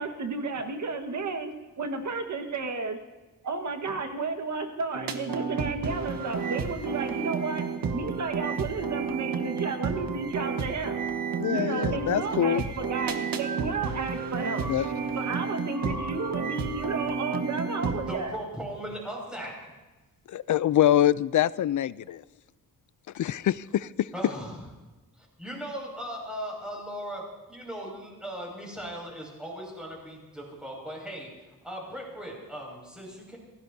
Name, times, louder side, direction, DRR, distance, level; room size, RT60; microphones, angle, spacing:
voice 1, 0.0-3.0 3.4-7.7 7.9-11.0 11.5-18.3, right 4 dB, 55° right, 6 dB, 1.6 m, -32 dB
sound 1, 4.9-18.2, right 5 dB, 90° right, 1.4 m, -31 dB
voice 2, 11.4-12.7 14.7-14.9 20.3-22.2 23.1-23.9, left 12 dB, 65° left, 18 dB, 0.5 m, -24 dB
voice 3, 18.0-19.6 24.1-24.6 25.4-33.4, equal, 5° right, -2 dB, 5.9 m, -38 dB
28.0 x 16.5 x 2.8 m, 1.2 s
wide cardioid pair, 150°, 33 cm